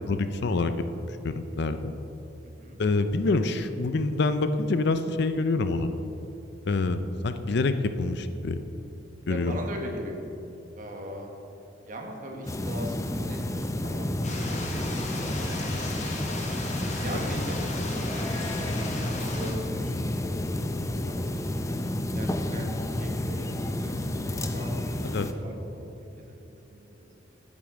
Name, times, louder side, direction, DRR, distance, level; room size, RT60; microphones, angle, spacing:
voice 1, 0.1-1.9 2.8-5.9 6.7-8.6 9.3-9.5 25.1-25.3, left 3 dB, 65° left, 10 dB, 0.5 m, -26 dB
voice 2, 2.4-2.8 6.6-7.0 9.3-10.3 10.8-11.3 11.9-15.3 17.0-20.0 20.2-20.6 21.0-21.1 21.4-22.7 23.0-27.4, equal, 45° right, 1 dB, 1.4 m, -40 dB
sound 1, 12.5-25.3, left 1 dB, 15° left, 0.5 m, -30 dB
sound 2, 14.2-19.5, left 2 dB, 40° left, 1.4 m, -36 dB
11.5 x 7.6 x 4.9 m, 2.9 s
head